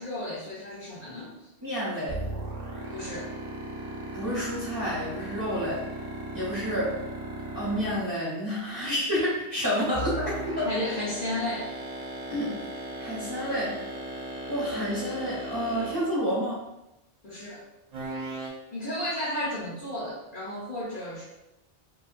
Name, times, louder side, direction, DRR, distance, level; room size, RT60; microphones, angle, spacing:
voice 1, 0.0-1.3 2.9-3.3 10.6-11.7 17.2-17.6 18.7-21.2, left 1 dB, 55° left, -7 dB, 0.8 m, -33 dB
voice 2, 1.6-2.2 4.1-5.8 6.3-6.9 7.5-10.7 12.3-12.5 13.0-13.7 14.5-16.6, equal, 20° right, -9 dB, 0.9 m, -29 dB
sound 1, 2.1-8.2 9.9-16.2 17.9-18.5, right 2 dB, 50° right, 0.6 m, -36 dB
2.9 x 2.2 x 2.4 m, 0.90 s
omnidirectional pair, 1.1 m